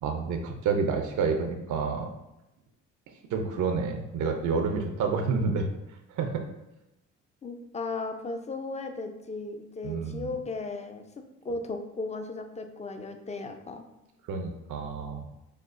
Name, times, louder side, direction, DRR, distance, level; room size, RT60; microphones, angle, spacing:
voice 1, 0.0-2.1 3.3-5.7 6.1-6.4 9.8-10.3 14.3-15.2, right 5 dB, 75° right, 4 dB, 0.6 m, -29 dB
voice 2, 7.4-11.0 11.4-13.8, left 3 dB, 20° left, 6 dB, 0.5 m, -36 dB
6.4 x 2.4 x 2.5 m, 0.92 s
cardioid pair, 90°, 30 cm